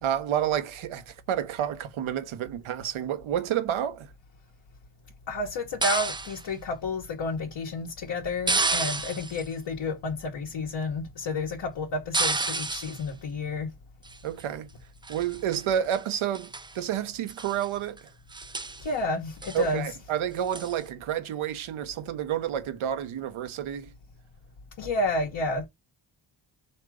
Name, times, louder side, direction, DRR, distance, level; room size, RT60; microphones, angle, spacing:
voice 1, 0.0-4.1 14.2-14.7 15.1-18.1 19.5-23.9, right 10 dB, 75° right, 0.9 m, -30 dB
voice 2, 5.3-13.7 18.8-19.9 24.8-25.7, left 2 dB, 60° left, 1.1 m, -30 dB
sound 1, 5.8-6.4 8.5-9.5 12.1-13.0 14.0-14.4 15.0-15.6 15.9-16.0 16.3-16.7 17.3-17.7 18.0-18.1 18.3-18.8 19.4-19.7 20.5-20.8, right 3 dB, 10° right, 0.3 m, -30 dB
3.6 x 2.9 x 4.7 m
supercardioid pair, 60°, 50 cm